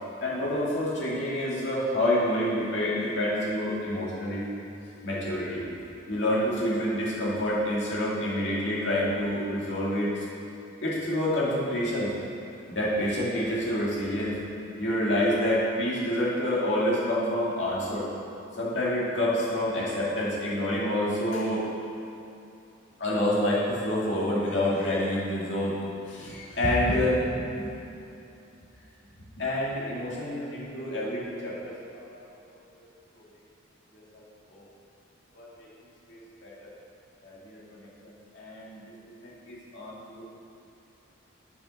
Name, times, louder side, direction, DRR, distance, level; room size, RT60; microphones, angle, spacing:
voice 1, 0.2-4.5 5.0-5.7 6.1-10.2 10.8-12.1 12.7-14.4 14.8-18.1 18.6-21.7 23.0-25.8 26.1-27.7 29.4-32.3 32.8-32.9 33.2-33.3 33.9-34.2 34.5-34.6 35.3-35.7 36.1-36.7 37.2-38.8 39.1-40.2, left 1 dB, 65° left, -7 dB, 2.3 m, -28 dB
7.3 x 7.1 x 6.4 m, 2.7 s
head